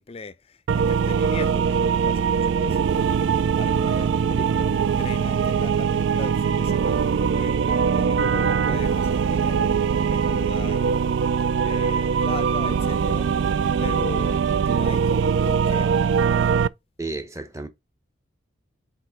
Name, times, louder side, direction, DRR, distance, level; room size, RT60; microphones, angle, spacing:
voice 1, 0.0-3.1 3.6-9.8 10.1-11.0 11.6-13.3 13.8-15.9, left 3 dB, 30° left, 0.5 m, -38 dB
sound 1, 0.7-16.7, right 6 dB, 65° right, 0.3 m, -22 dB
voice 2, 17.0-17.7, right 2 dB, 15° right, 0.9 m, -32 dB
4.9 x 4.1 x 5.7 m
head